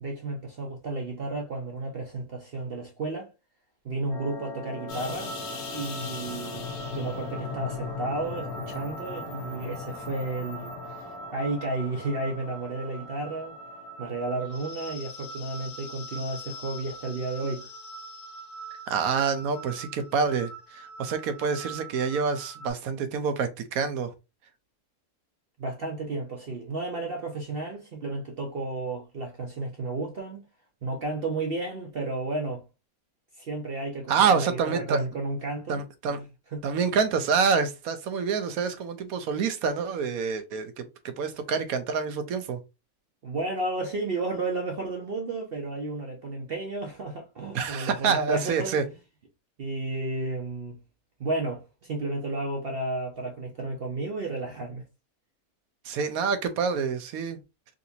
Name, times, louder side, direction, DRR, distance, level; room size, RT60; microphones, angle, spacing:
voice 1, 0.0-3.3 3.8-5.3 5.7-13.6 14.0-17.7 25.6-30.4 30.8-32.7 33.4-35.8 36.1-36.3 36.5-36.7 43.2-48.8 49.6-50.8 51.2-54.8, right 2 dB, 55° right, 0.7 m, -32 dB
sound 1, 4.1-14.9, left 2 dB, 55° left, 1.5 m, -43 dB
sound 2, 4.9-22.7, left 2 dB, 85° left, 1.4 m, -40 dB
voice 2, 18.9-24.1 34.1-35.0 35.7-36.2 36.6-42.6 47.5-48.8 55.8-57.4, right 5 dB, 75° right, 1.1 m, -27 dB
3.8 x 2.6 x 2.7 m
omnidirectional pair, 1.6 m